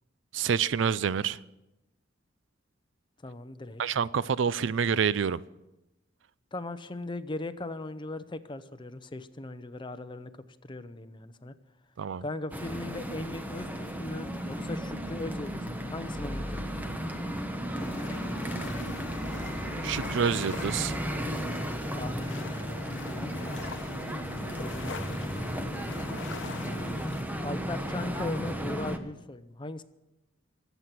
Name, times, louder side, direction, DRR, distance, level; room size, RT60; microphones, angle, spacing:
voice 1, 0.3-1.4 3.8-5.4 12.0-12.2 19.8-21.0, right 7 dB, 70° right, 18 dB, 0.4 m, -27 dB
voice 2, 3.2-3.8 6.5-10.4 10.6-11.5 12.2-16.7 21.9-23.7 24.6-25.3 26.4-27.1 27.4-29.8, left 2 dB, 25° left, 12 dB, 0.7 m, -39 dB
sound 1, 12.5-29.0, equal, 10° right, 1.0 m, -34 dB
sound 2, 17.8-27.2, left 3 dB, 70° left, 0.9 m, -42 dB
23.0 x 8.2 x 5.9 m, 0.97 s
head